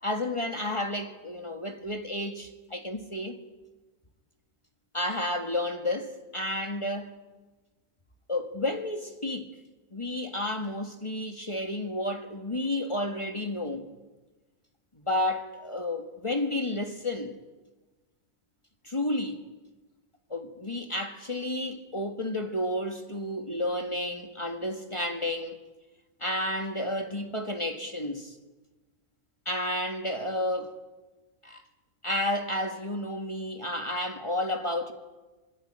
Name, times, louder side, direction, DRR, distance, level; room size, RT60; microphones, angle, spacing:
voice 1, 0.0-3.4 4.9-7.2 8.3-9.6 9.9-13.9 15.0-17.4 18.8-19.4 20.3-25.6 26.2-28.4 29.5-30.8 31.4-31.6 32.0-34.9, left 1 dB, 20° left, 1.8 m, -31 dB
26.0 x 21.0 x 8.8 m
omnidirectional pair, 1.4 m